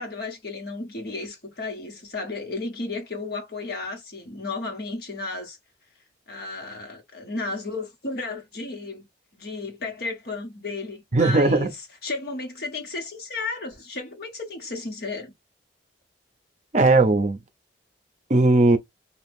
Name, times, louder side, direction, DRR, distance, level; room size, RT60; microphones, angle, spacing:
voice 1, 0.0-5.6 6.3-9.1 9.3-11.7 12.0-15.3, left 3 dB, 55° left, 1.2 m, -33 dB
voice 2, 11.1-11.7 16.7-17.4 18.3-18.8, right 2 dB, 40° right, 0.6 m, -18 dB
2.9 x 2.3 x 3.4 m
head